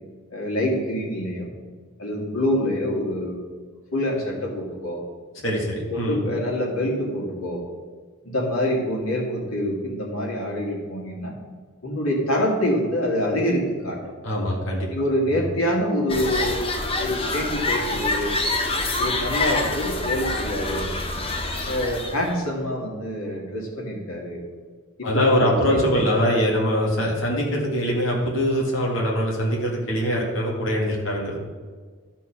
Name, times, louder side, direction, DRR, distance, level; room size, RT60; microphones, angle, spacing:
voice 1, 0.3-1.5 2.0-3.4 3.9-5.0 5.9-7.6 8.2-11.4 11.8-14.0 14.9-16.7 17.0-18.3 19.0-20.9 21.7-24.4 25.0-26.1, left 1 dB, 85° left, -1 dB, 2.5 m, -26 dB
voice 2, 5.4-6.2 14.2-14.9 15.3-15.4 25.0-31.4, equal, 60° left, -2 dB, 2.1 m, -23 dB
sound 1, 16.1-22.3, left 2 dB, 25° left, 0.9 m, -26 dB
12.5 x 4.6 x 6.0 m, 1.5 s
head